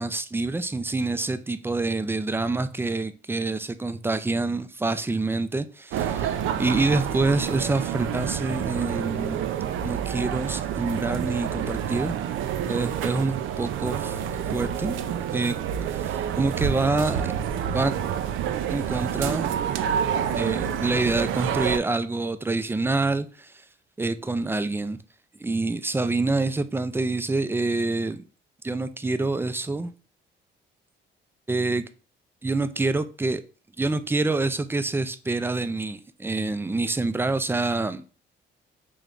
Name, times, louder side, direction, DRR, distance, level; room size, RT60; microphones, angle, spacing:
voice 1, 0.0-9.5 9.8-12.2 12.7-14.2 14.5-15.0 15.3-15.6 15.9-17.3 17.7-17.9 18.7-19.5 20.3-23.5 24.0-25.0 25.4-28.2 28.6-29.9 31.5-31.8 32.4-33.4 33.8-38.0, right 3 dB, 10° right, 0.4 m, -26 dB
sound 1, 5.9-21.8, right 9 dB, 85° right, 0.5 m, -28 dB
3.3 x 3.0 x 3.8 m
cardioid pair, 90°, 20 cm